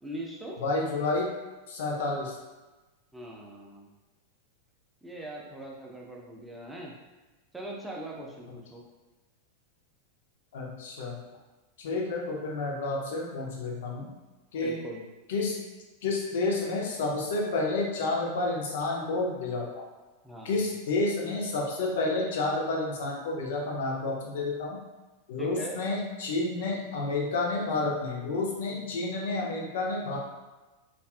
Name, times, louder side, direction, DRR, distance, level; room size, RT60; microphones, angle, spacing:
voice 1, 0.0-0.6 3.1-3.9 5.0-6.9 7.5-8.8 14.6-15.0 20.2-20.6 25.4-25.8 28.7-28.8, right 1 dB, 5° right, -3 dB, 0.5 m, -41 dB
voice 2, 0.6-1.3 1.7-2.4 10.5-11.2 11.8-14.1 14.5-14.8 15.3-15.5 16.0-19.8 20.4-24.8 25.3-30.2, left 2 dB, 55° left, -1 dB, 0.5 m, -30 dB
2.6 x 2.4 x 2.3 m, 1.2 s
figure-of-eight pair, 90°, 0 cm